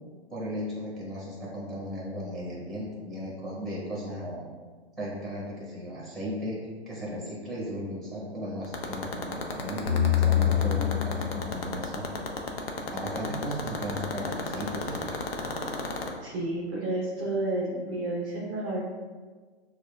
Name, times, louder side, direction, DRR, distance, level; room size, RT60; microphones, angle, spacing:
voice 1, 0.3-4.5 5.0-6.6 6.9-9.8 10.2-12.1 12.9-15.2, equal, ahead, -5 dB, 1.0 m, -35 dB
sound 1, 8.6-16.1, left 5 dB, 65° left, 0.6 m, -31 dB
sound 2, 9.9-13.1, left 10 dB, 45° left, 1.2 m, -27 dB
voice 2, 16.2-18.8, right 2 dB, 20° right, -4 dB, 0.4 m, -31 dB
6.1 x 2.1 x 2.3 m, 1.5 s
hypercardioid pair, 130°, 34 cm